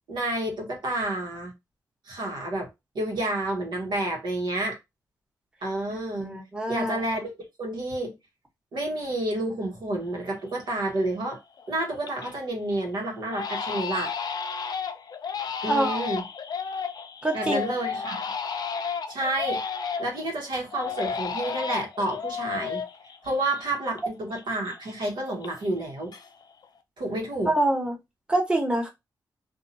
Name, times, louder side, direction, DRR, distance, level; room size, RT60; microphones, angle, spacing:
voice 1, 0.1-1.5 2.1-2.7 2.9-4.8 5.6-6.3 6.7-7.3 7.6-8.1 8.7-11.4 11.7-14.1 15.6-16.2 17.3-18.2 19.1-19.6 20.0-22.8 23.2-26.1 27.0-27.5, right 1 dB, 75° right, 1.0 m, -29 dB
voice 2, 6.2-7.0 15.7-16.1 17.2-17.7 27.5-28.0 28.3-28.9, right 1 dB, 10° right, 1.1 m, -25 dB
Crying sobbing, 10.1-10.2 10.7-11.2 11.6-12.4 12.7-12.9 13.3-20.2 20.7-24.0 24.3-25.8 26.1-26.6, left 6 dB, 60° left, 0.5 m, -33 dB
2.7 x 2.3 x 2.7 m
cardioid pair, 60°, 8 cm